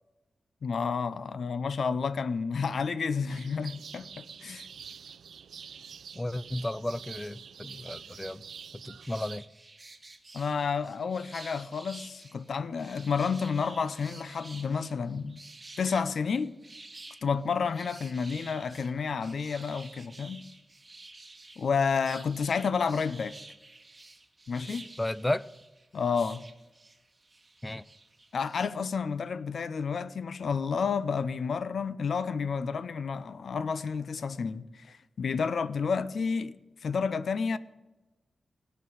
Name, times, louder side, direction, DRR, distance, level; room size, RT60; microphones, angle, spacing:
voice 1, 0.6-4.7 10.3-15.4 15.8-16.5 17.2-20.4 21.6-23.3 24.5-24.9 25.9-26.4 28.3-36.6 36.8-37.6, left 5 dB, 65° left, 0.6 m, -30 dB
sound 1, 3.3-9.4, right 7 dB, 90° right, 0.4 m, -46 dB
voice 2, 6.1-8.4 8.8-9.4 25.0-25.5 27.6-27.8, left 1 dB, 15° left, 0.4 m, -33 dB
sound 2, 9.0-28.7, right 2 dB, 20° right, 1.3 m, -50 dB
17.5 x 6.0 x 9.5 m
wide cardioid pair, 135°, 0 cm